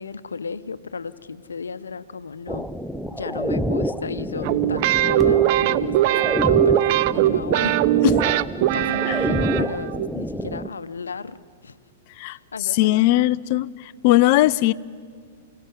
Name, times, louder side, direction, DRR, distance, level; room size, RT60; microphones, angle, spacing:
voice 1, 0.0-2.7 3.1-7.8 8.7-11.8 12.2-13.3, left 5 dB, 80° left, 13 dB, 0.9 m, -34 dB
sound 1, 2.5-10.7, equal, ahead, 0.7 m, -28 dB
sound 2, 4.4-10.1, right 14 dB, 50° right, 0.6 m, -20 dB
voice 2, 12.8-13.7 14.0-14.7, left 16 dB, 50° left, 19 dB, 0.6 m, -18 dB
28.5 x 17.5 x 9.7 m, 2.1 s
hypercardioid pair, 110°, 0 cm